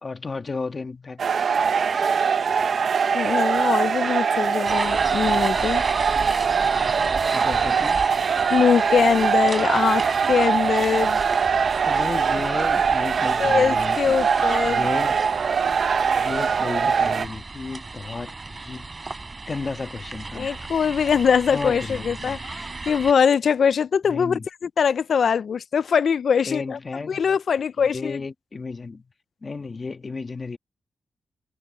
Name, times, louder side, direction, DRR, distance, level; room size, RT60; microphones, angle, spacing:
voice 1, 0.0-1.3 7.3-8.0 11.8-14.2 14.6-15.2 16.1-18.9 19.5-20.5 21.5-22.4 24.1-24.4 26.4-27.1 27.9-29.1 29.4-30.6, left 4 dB, 40° left, 1.8 m, -33 dB
sound 1, 1.2-17.2, right 6 dB, 65° right, 0.8 m, -22 dB
voice 2, 2.8-5.8 8.5-11.2 13.4-14.9 20.3-26.8 27.0-28.2, left 7 dB, 70° left, 0.5 m, -22 dB
sound 2, 4.6-23.1, right 3 dB, 30° right, 6.6 m, -35 dB
cardioid pair, 95°, 0 cm